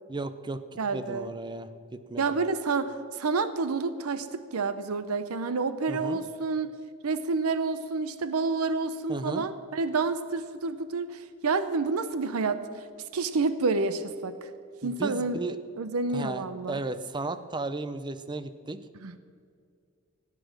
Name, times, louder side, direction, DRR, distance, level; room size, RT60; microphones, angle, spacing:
voice 1, 0.1-2.2 5.9-6.2 9.1-9.4 14.8-15.6 16.1-18.8, right 2 dB, 20° right, 13 dB, 0.5 m, -35 dB
voice 2, 0.8-1.3 2.2-6.7 7.0-12.8 13.1-14.5 14.8-15.4 15.8-16.8 19.0-19.1, right 4 dB, 85° right, 12 dB, 0.6 m, -29 dB
16.0 x 8.5 x 6.4 m, 2.3 s
head